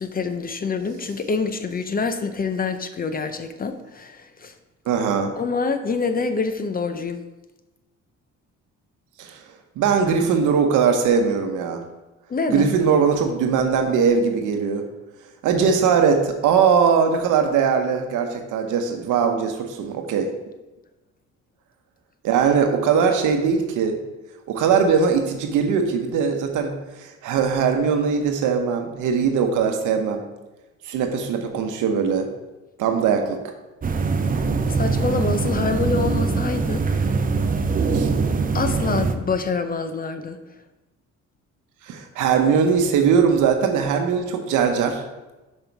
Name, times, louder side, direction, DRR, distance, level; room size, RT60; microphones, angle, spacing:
voice 1, 0.0-4.5 5.4-7.2 12.3-12.7 34.7-37.0 38.5-40.4, left 4 dB, 30° left, 9 dB, 0.6 m, -26 dB
voice 2, 4.9-5.4 9.2-9.4 9.8-11.8 12.5-14.9 15.4-20.3 22.2-24.0 24.5-30.2 30.8-32.3 32.8-33.4 37.9-38.1 41.8-45.0, right 6 dB, 85° right, 5 dB, 1.0 m, -20 dB
sound 1, 33.8-39.1, right 4 dB, 30° right, 0.6 m, -22 dB
5.5 x 5.4 x 4.6 m, 1.1 s
cardioid pair, 90°, 30 cm